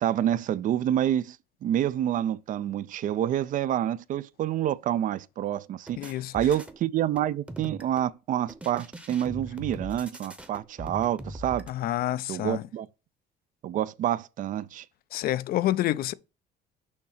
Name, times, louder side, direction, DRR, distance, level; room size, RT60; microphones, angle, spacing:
voice 1, 0.0-1.4 1.6-11.7 12.3-12.9 13.6-14.9, right 11 dB, 50° right, 0.4 m, -28 dB
sound 1, 5.9-6.8 7.2-8.1 8.5-11.7, right 1 dB, 5° right, 0.8 m, -41 dB
voice 2, 6.0-6.3 11.7-12.6 15.1-16.1, left 14 dB, 60° left, 0.4 m, -28 dB
6.4 x 2.8 x 5.5 m
cardioid pair, 110°, 17 cm